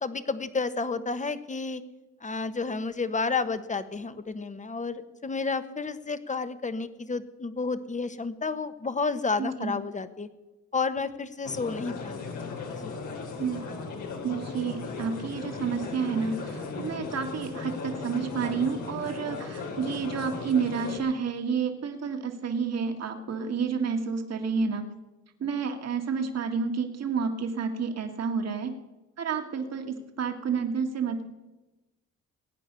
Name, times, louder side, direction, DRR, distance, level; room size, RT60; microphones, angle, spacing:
voice 1, 0.0-1.8 2.2-10.3 10.7-12.1 12.8-12.9, left 4 dB, 25° left, 12 dB, 1.2 m, -31 dB
voice 2, 9.4-9.7 13.4-13.7 14.2-24.9 25.4-28.7 29.2-31.2, right 6 dB, 55° right, 5 dB, 2.1 m, -30 dB
sound 1, 11.4-21.0, left 4 dB, 80° left, 3.4 m, -37 dB
19.5 x 9.4 x 6.9 m, 1.1 s
cardioid pair, 90°, 30 cm